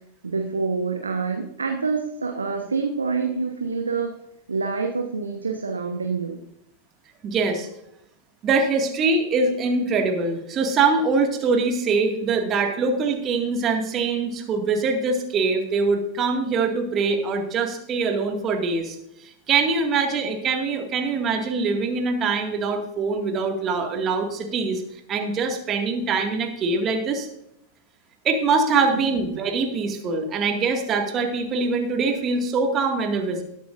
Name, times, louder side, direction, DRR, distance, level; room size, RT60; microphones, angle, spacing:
voice 1, 0.2-4.1 4.5-6.4 28.8-29.0, right 4 dB, 75° right, 3 dB, 1.1 m, -26 dB
voice 2, 7.2-7.7 8.4-19.0 19.2-24.8 25.1-27.3 28.2-33.4, right 4 dB, 30° right, 3 dB, 2.1 m, -23 dB
19.0 x 8.1 x 2.6 m, 0.80 s
figure-of-eight pair, 90°, 0 cm